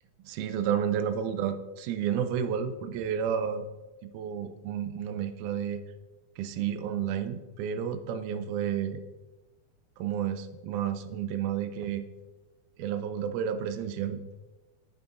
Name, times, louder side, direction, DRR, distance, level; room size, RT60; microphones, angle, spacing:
voice 1, 0.2-3.7 4.0-5.8 6.4-9.0 10.0-12.1 12.8-14.2, right 8 dB, 80° right, 9 dB, 2.0 m, -31 dB
9.4 x 8.2 x 2.6 m, 1.1 s
omnidirectional pair, 3.7 m